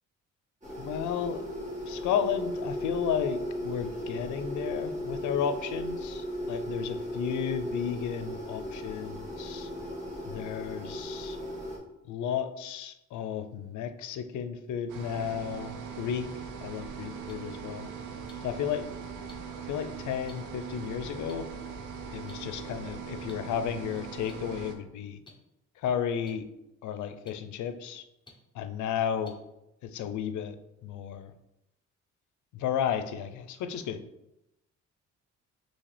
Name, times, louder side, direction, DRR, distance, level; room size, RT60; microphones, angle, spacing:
sound 1, 0.6-11.8, equal, 25° right, 1.7 m, -36 dB
voice 1, 0.8-1.4 1.9-9.7 10.2-11.4 12.1-16.3 16.6-17.9 18.4-18.9 19.7-21.5 22.1-25.2 25.8-26.4 26.8-28.0 28.5-29.3 29.8-30.6 30.8-31.3 32.5-34.0, left 8 dB, 75° left, 10 dB, 0.5 m, -33 dB
sound 2, 14.9-24.8, right 6 dB, 85° right, 0.6 m, -41 dB
sound 3, 17.3-17.4 18.3-18.4 19.3-19.4 20.3-20.4 21.3-21.4 22.3-22.4 23.3-23.4 24.3-24.4 25.3-25.4 26.3-26.4 27.3-27.4 28.3-28.4 29.2-29.3 30.2-30.3, left 3 dB, 15° left, 0.8 m, -52 dB
5.6 x 2.8 x 3.3 m, 0.88 s
cardioid pair, 90°, 30 cm